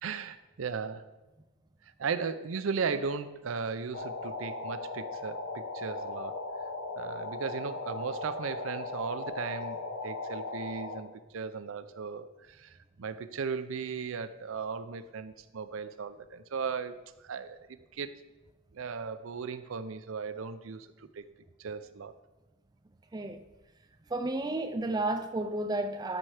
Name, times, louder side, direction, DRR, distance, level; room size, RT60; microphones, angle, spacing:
voice 1, 0.0-1.0 2.0-6.4 7.0-17.6 17.9-18.1 18.7-21.2 21.6-22.1, right 5 dB, 75° right, 0.5 m, -36 dB
sound 1, 3.9-11.0, left 3 dB, 75° left, 0.9 m, -38 dB
voice 2, 24.1-26.2, right 2 dB, 20° right, 0.4 m, -32 dB
13.0 x 4.4 x 4.9 m
head